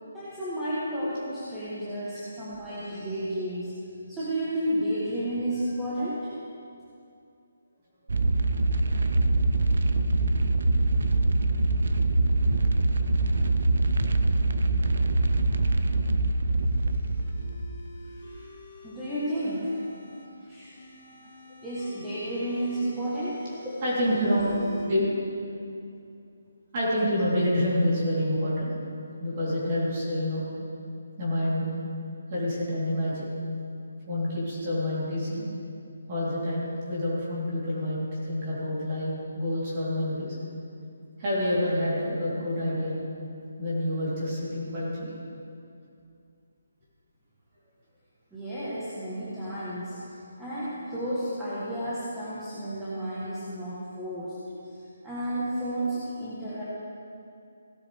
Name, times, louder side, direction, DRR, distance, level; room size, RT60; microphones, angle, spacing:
voice 1, 0.1-3.7 4.1-6.3 18.8-19.8 20.5-20.7 21.6-23.7 48.3-50.0 50.4-54.3 55.0-56.6, right 1 dB, 5° right, -12 dB, 1.3 m, -32 dB
sound 1, 8.1-18.2, right 2 dB, 55° right, 0.7 m, -24 dB
sound 2, 16.3-20.3 20.8-24.8, equal, 35° left, 2.9 m, -46 dB
voice 2, 23.8-24.5 24.9-25.1 26.7-28.7 29.2-30.4 31.2-31.7 32.3-33.3 34.1-35.4 36.1-40.3 41.2-43.0 43.6-45.1, left 1 dB, 25° right, -8 dB, 3.5 m, -27 dB
16.5 x 12.5 x 3.5 m, 2.5 s
hypercardioid pair, 175°, 0 cm